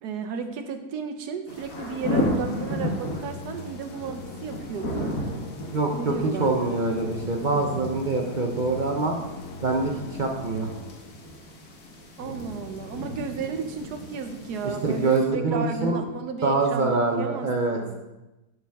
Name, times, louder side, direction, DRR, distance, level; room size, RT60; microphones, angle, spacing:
voice 1, 0.0-5.2 6.0-6.8 12.2-18.0, right 6 dB, 75° right, 7 dB, 1.3 m, -33 dB
sound 1, 1.5-15.2, left 1 dB, 65° left, 1.7 m, -34 dB
Musical instrument, 2.8-11.3, left 3 dB, 80° left, 1.2 m, -40 dB
voice 2, 5.7-9.2 9.6-10.7 14.6-15.9 16.4-17.8, right 3 dB, 55° right, 1 dB, 0.5 m, -25 dB
11.5 x 5.0 x 3.5 m, 1.0 s
omnidirectional pair, 1.7 m